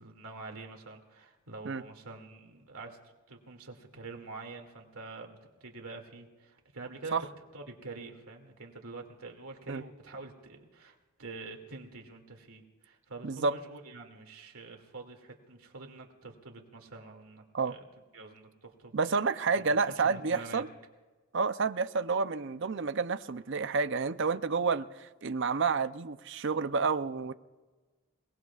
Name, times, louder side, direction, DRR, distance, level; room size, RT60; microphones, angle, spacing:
voice 1, 0.0-3.0 3.3-7.2 7.5-17.8 18.1-18.9 19.9-20.6, right 3 dB, 75° right, 3 dB, 2.4 m, -46 dB
voice 2, 13.2-13.5 17.5-17.7 18.9-20.7 21.3-27.3, right 4 dB, 55° right, 11 dB, 0.6 m, -29 dB
28.5 x 19.0 x 2.4 m, 1.3 s
head